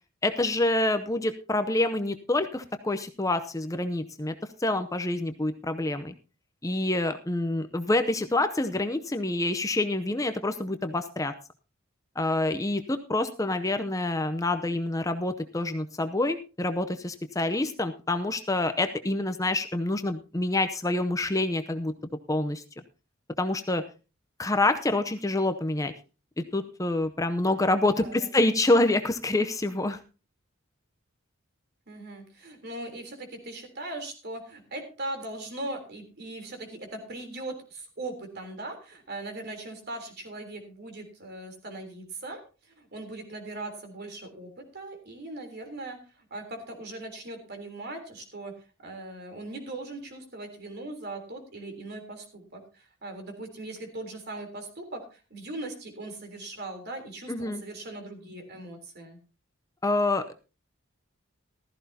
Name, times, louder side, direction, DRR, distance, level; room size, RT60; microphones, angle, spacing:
voice 1, 0.2-4.3 4.6-6.1 6.6-11.3 12.2-21.9 22.3-22.6 23.4-23.8 24.4-25.9 26.4-30.0 57.3-57.6 59.8-60.3, left 2 dB, 15° left, 9 dB, 0.6 m, -27 dB
voice 2, 27.8-28.3 31.9-42.4 42.8-46.0 46.3-48.5 48.8-59.2, right 2 dB, 50° right, 5 dB, 3.4 m, -39 dB
15.0 x 14.0 x 2.8 m, 0.33 s
head